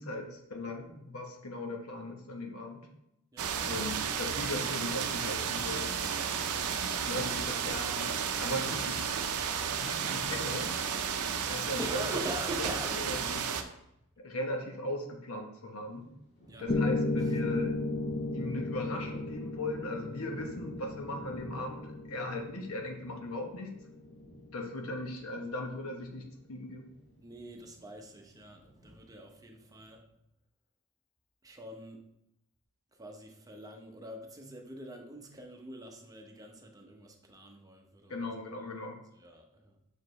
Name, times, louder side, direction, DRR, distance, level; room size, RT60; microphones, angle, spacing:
voice 1, 0.0-2.9 3.6-6.1 7.1-8.1 8.4-9.3 9.7-10.7 11.5-12.0 13.0-13.4 14.2-16.1 16.6-17.8 18.3-23.7 24.5-26.9 38.1-39.0, left 1 dB, 70° left, 2 dB, 1.0 m, -38 dB
sound 1, 3.4-13.6, right 7 dB, 80° right, 0.6 m, -33 dB
voice 2, 11.8-13.1 16.5-16.7 27.2-30.0 31.4-32.0 32.9-38.3 39.1-39.8, right 1 dB, 15° right, 2 dB, 0.8 m, -43 dB
sound 2, 15.8-29.9, right 1 dB, 50° left, 1.4 m, -53 dB
Piano, 16.7-24.7, left 2 dB, 30° left, 0.4 m, -35 dB
6.5 x 4.9 x 3.1 m, 0.83 s
head